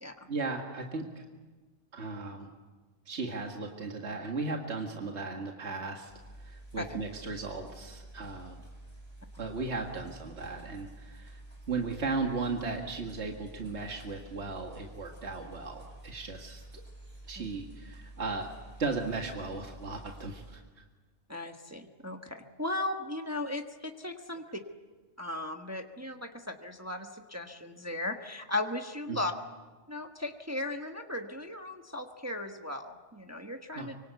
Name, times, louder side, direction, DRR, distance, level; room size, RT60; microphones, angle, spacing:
voice 1, 0.3-1.2 1.9-2.5 3.1-6.1 6.4-8.6 9.4-11.4 11.7-16.8 17.3-18.5 18.8-20.6 29.1-29.2 33.8-33.9, right 3 dB, 65° right, 2 dB, 2.2 m, -36 dB
sound 1, 6.1-20.5, right 1 dB, 30° right, 6.9 m, -49 dB
voice 2, 21.3-24.4 25.2-29.3 29.9-34.0, left 2 dB, 15° right, 4 dB, 1.2 m, -37 dB
25.0 x 24.5 x 8.2 m, 1.3 s
omnidirectional pair, 1.2 m